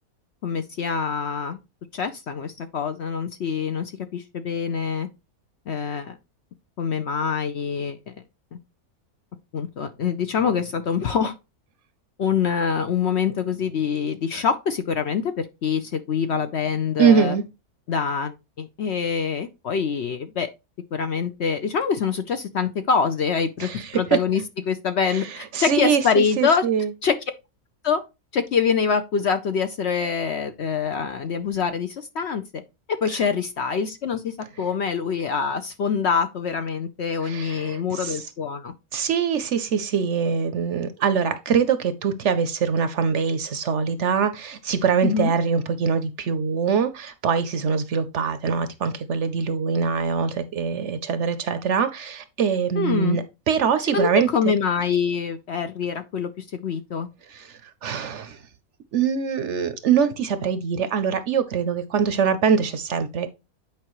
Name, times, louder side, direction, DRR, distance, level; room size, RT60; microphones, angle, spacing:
voice 1, 0.4-1.6 1.9-5.1 5.7-6.2 6.8-8.0 8.5-8.6 9.5-11.3 12.2-17.4 17.9-20.5 20.9-24.4 24.7-26.6 27.0-27.1 27.8-28.0 28.3-32.6 32.9-38.7 45.0-45.3 52.7-53.2 53.9-57.1, left 6 dB, 60° left, 0.8 m, -25 dB
voice 2, 17.0-17.4 23.6-24.0 25.1-26.9 33.1-33.2 37.2-38.2 38.9-54.5 57.3-58.4 58.9-63.3, right 6 dB, 60° right, 0.9 m, -23 dB
8.7 x 4.9 x 3.0 m
omnidirectional pair, 1.6 m